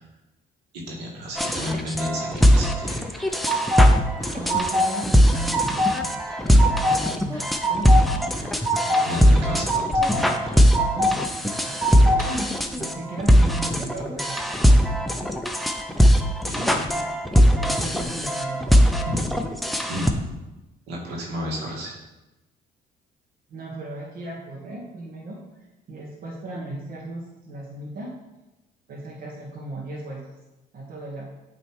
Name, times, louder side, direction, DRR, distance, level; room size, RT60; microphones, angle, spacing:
voice 1, 0.7-3.0 9.0-9.8 10.1-10.3 16.5-16.9 18.7-19.6 19.9-20.3 20.9-21.9, equal, 85° right, -2 dB, 2.0 m, -32 dB
sound 1, 1.4-20.1, equal, ahead, 0.5 m, -20 dB
sound 2, 2.8-3.9 4.2-4.9 5.2-5.9 6.3-7.0 7.3-8.0 8.4-9.0 9.4-10.1 10.4-11.1 11.5-12.3, equal, 15° right, 2.0 m, -23 dB
voice 2, 4.3-6.2 6.8-8.2 8.8-9.7 10.9-11.8 12.2-15.1 16.9-17.1 17.5-18.8 23.5-25.4 25.9-28.1 28.9-30.2 30.7-31.3, right 2 dB, 55° right, -3 dB, 1.4 m, -36 dB
8.5 x 3.3 x 4.6 m, 1.0 s
cardioid pair, 110°, 17 cm